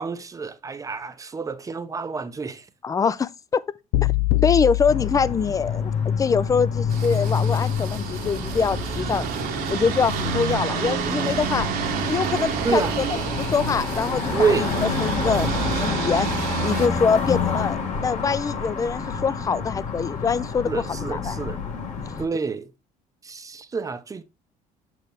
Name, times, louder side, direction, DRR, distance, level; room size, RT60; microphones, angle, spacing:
voice 1, 0.0-2.7 12.6-13.0 14.3-14.7 20.7-21.6 22.2-22.7 23.2-24.2, right 5 dB, 20° right, 0.6 m, -27 dB
voice 2, 2.8-3.6 4.4-9.3 9.7-11.7 12.0-13.0 13.4-14.7 15.0-16.3 16.6-20.9 21.1-21.4, left 5 dB, 20° left, 0.4 m, -24 dB
sound 1, 3.9-6.2, left 17 dB, 90° left, 0.5 m, -24 dB
sound 2, 4.9-22.3, left 5 dB, 45° left, 1.7 m, -28 dB
sound 3, 6.9-16.9, right 7 dB, 70° right, 1.2 m, -29 dB
6.3 x 4.5 x 3.3 m
cardioid pair, 110°, 16 cm